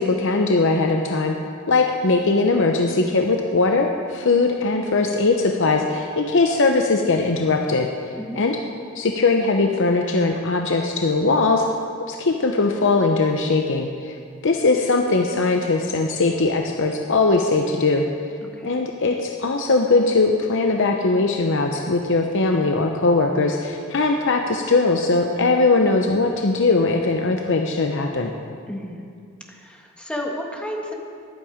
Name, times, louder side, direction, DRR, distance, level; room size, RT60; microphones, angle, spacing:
voice 1, 0.0-1.3 1.7-8.6 8.9-11.6 12.1-14.1 14.4-18.1 18.6-28.3, left 3 dB, 60° left, 3 dB, 0.8 m, -20 dB
voice 2, 28.7-29.0 29.5-30.9, left 1 dB, 5° left, 0 dB, 1.4 m, -32 dB
14.5 x 11.5 x 5.1 m, 2.3 s
head